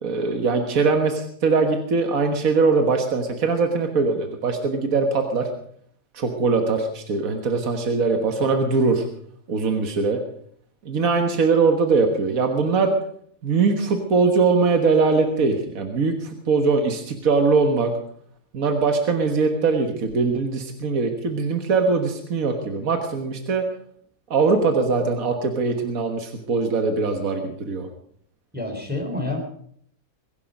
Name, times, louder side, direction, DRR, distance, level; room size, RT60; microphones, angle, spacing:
voice 1, 0.0-5.5 6.1-9.0 9.5-10.2 10.9-13.0 13.4-17.9 18.5-23.6 24.3-27.9, right 4 dB, 75° right, 5 dB, 1.9 m, -21 dB
voice 2, 28.5-29.4, left 2 dB, 5° right, 2 dB, 3.7 m, -28 dB
21.5 x 11.0 x 5.2 m, 0.63 s
omnidirectional pair, 1.5 m